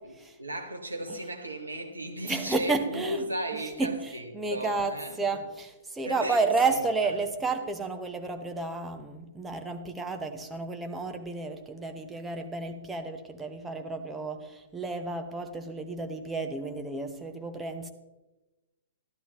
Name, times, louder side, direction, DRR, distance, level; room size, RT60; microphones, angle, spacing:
voice 1, 0.0-5.2 6.0-6.8, right 1 dB, 80° right, 1.5 m, -36 dB
voice 2, 2.2-3.2 3.8-17.9, right 3 dB, 10° right, 0.9 m, -31 dB
12.5 x 12.0 x 3.1 m
figure-of-eight pair, 110°, 0 cm